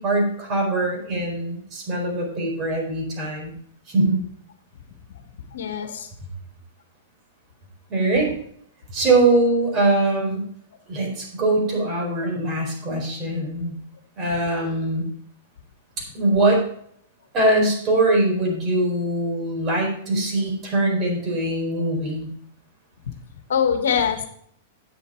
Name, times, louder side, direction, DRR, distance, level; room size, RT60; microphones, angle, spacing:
voice 1, 0.0-3.5 3.9-4.2 7.9-8.3 8.9-10.4 10.9-13.8 14.2-15.1 16.0-16.6 17.3-22.3, right 2 dB, 35° right, 0 dB, 4.4 m, -22 dB
voice 2, 5.5-6.1 23.1-23.2 23.5-24.2, left 7 dB, 80° left, 6 dB, 1.3 m, -23 dB
8.7 x 7.2 x 4.4 m, 0.64 s
hypercardioid pair, 125°, 0 cm